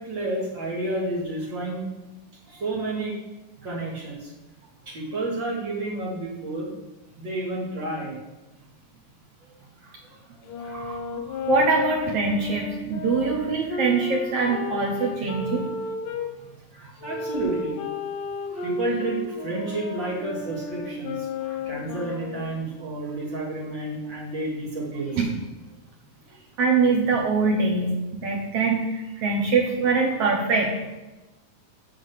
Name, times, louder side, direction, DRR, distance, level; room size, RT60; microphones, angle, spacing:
voice 1, 0.0-1.9 2.4-3.2 3.6-4.3 4.9-6.7 7.2-8.2 9.8-10.3 10.6-10.8 16.7-17.8 18.5-25.2 26.3-26.4, right 2 dB, 40° right, -4 dB, 2.7 m, -31 dB
sound 1, 10.5-16.3 17.0-22.6, left 3 dB, 85° left, 2.4 m, -33 dB
voice 2, 10.7-11.0 11.3-15.7 25.2-25.3 26.6-30.9, right 4 dB, 65° right, 0 dB, 1.7 m, -23 dB
8.4 x 5.7 x 6.5 m, 1.1 s
omnidirectional pair, 3.5 m